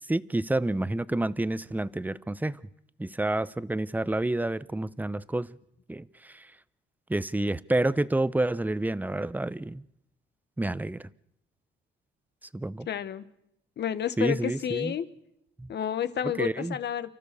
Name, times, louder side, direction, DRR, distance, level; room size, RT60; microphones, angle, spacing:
voice 1, 0.1-2.6 3.0-5.5 5.9-6.5 7.1-9.8 10.6-11.0 12.5-12.9 14.2-14.9 15.6-15.7 16.4-16.8, right 2 dB, 10° right, 17 dB, 0.7 m, -29 dB
voice 2, 12.9-13.3 13.8-15.1 15.7-17.1, left 10 dB, 60° left, 12 dB, 1.3 m, -30 dB
29.5 x 13.5 x 6.9 m, 0.78 s
cardioid pair, 90°, 20 cm